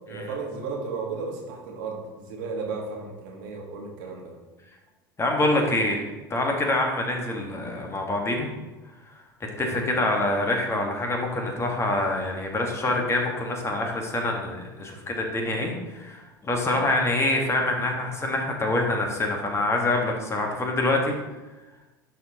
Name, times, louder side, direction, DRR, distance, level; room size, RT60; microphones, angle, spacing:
voice 1, 0.0-4.3 9.6-9.8 16.7-16.9, right 4 dB, 65° right, 0 dB, 1.6 m, -34 dB
voice 2, 5.2-8.5 9.6-21.1, left 2 dB, 20° left, 1 dB, 1.6 m, -26 dB
10.5 x 4.8 x 3.0 m, 1.1 s
figure-of-eight pair, 75°, 12 cm